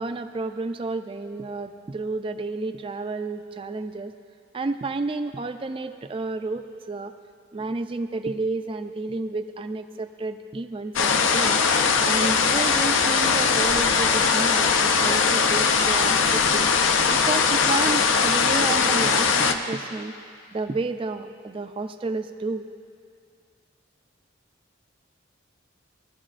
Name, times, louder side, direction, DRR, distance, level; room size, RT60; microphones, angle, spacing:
voice 1, 0.0-4.1 4.5-7.1 7.5-11.6 12.0-16.7 17.1-20.1 20.5-22.7, right 3 dB, 25° right, 8 dB, 0.3 m, -31 dB
sound 1, 11.0-19.5, left 5 dB, 75° left, 0.5 m, -20 dB
18.5 x 12.0 x 2.5 m, 2.3 s
head